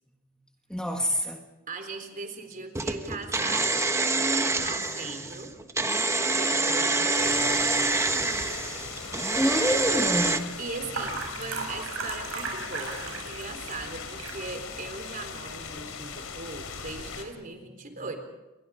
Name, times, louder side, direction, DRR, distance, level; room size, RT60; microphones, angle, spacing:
voice 1, 0.7-1.4 5.2-5.3 7.3-7.5 8.7-9.0 9.3-10.6 17.9-18.0, equal, 5° left, 2 dB, 1.7 m, -28 dB
voice 2, 1.7-3.7 4.4-5.5 6.3-7.4 10.6-18.2, right 3 dB, 40° right, 6 dB, 3.9 m, -39 dB
sound 1, 2.8-10.4, right 3 dB, 15° right, 1.3 m, -26 dB
sound 2, 7.1-17.2, left 5 dB, 90° left, 3.5 m, -40 dB
sound 3, 8.4-17.1, right 4 dB, 80° right, 6.5 m, -39 dB
29.0 x 23.0 x 5.1 m, 1.0 s
head